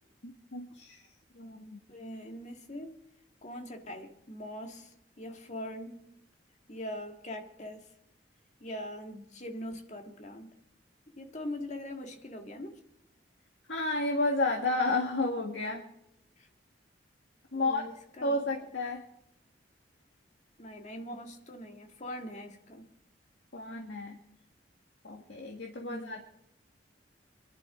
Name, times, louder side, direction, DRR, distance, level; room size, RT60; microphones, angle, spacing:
voice 1, 0.2-1.0 1.3-1.8 13.7-15.8 17.5-17.8 18.2-19.0 23.5-24.2 25.0-26.2, left 2 dB, 75° left, 1 dB, 1.7 m, -31 dB
voice 2, 1.9-3.0 3.4-6.1 6.7-7.9 8.6-10.5 11.1-12.8 16.4-16.5 17.5-18.3 20.6-22.9 25.8-26.2, left 1 dB, 40° left, 4 dB, 1.8 m, -42 dB
24.5 x 11.5 x 3.7 m, 0.78 s
head